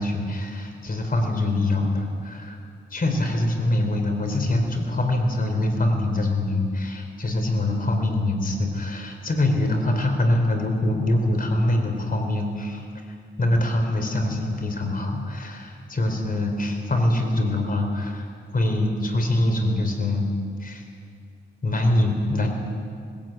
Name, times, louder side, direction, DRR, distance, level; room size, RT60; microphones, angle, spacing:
voice 1, 0.0-2.6 2.9-12.9 13.4-18.3 18.5-20.3 20.6-20.8 21.6-22.5, left 1 dB, 45° left, 4 dB, 4.1 m, -24 dB
18.5 x 16.5 x 9.2 m, 2.2 s
cardioid pair, 80°, 20 cm